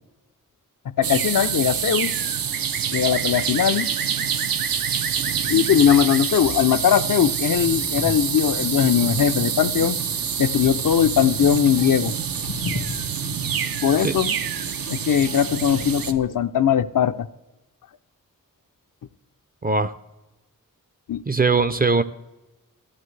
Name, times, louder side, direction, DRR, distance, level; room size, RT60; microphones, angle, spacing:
voice 1, 1.0-2.1 2.9-3.9 5.5-10.0 10.4-12.2 12.7-12.8 13.8-14.3 14.9-17.3 21.1-21.2, left 9 dB, 65° left, 11 dB, 0.5 m, -20 dB
sound 1, 1.0-16.1, right 7 dB, 75° right, 0.6 m, -26 dB
Wind / Boat Water vehicle, 7.6-16.2, left 3 dB, 90° left, 1.1 m, -37 dB
voice 2, 19.6-19.9 21.3-22.0, right 4 dB, 25° right, 13 dB, 0.4 m, -20 dB
14.0 x 8.4 x 3.2 m, 1.0 s
wide cardioid pair, 80°, 35 cm